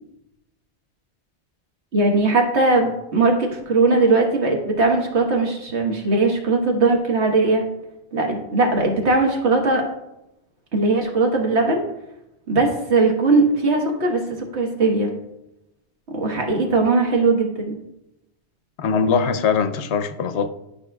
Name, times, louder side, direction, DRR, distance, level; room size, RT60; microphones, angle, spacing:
voice 1, 1.9-7.6 8.1-9.8 10.7-11.8 12.5-14.2 14.5-15.1 16.1-17.8, right 3 dB, 80° right, 1.6 m, -19 dB
voice 2, 18.8-20.5, left 6 dB, 85° left, 0.9 m, -21 dB
12.0 x 5.7 x 2.3 m
omnidirectional pair, 1.1 m